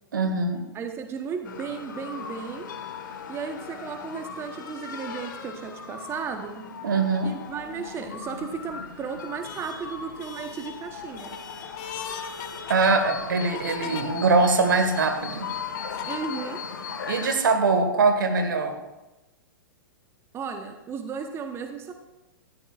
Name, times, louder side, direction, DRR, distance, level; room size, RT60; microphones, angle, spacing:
voice 1, 0.1-0.7 6.8-7.3 12.7-15.5 17.1-18.8, right 3 dB, 65° right, 7 dB, 1.7 m, -22 dB
voice 2, 0.7-2.7 3.3-6.7 7.2-11.4 16.0-16.7 20.3-21.9, right 6 dB, 20° right, 6 dB, 1.0 m, -35 dB
sound 1, 1.4-17.4, left 6 dB, 60° left, 1.6 m, -38 dB
sound 2, 7.6-7.9 8.5-9.2 9.7-10.3 10.8-14.0 14.7-14.8 15.7-16.3, left 9 dB, 40° left, 1.2 m, -38 dB
18.5 x 14.0 x 2.5 m, 1.0 s
figure-of-eight pair, 105°, 12 cm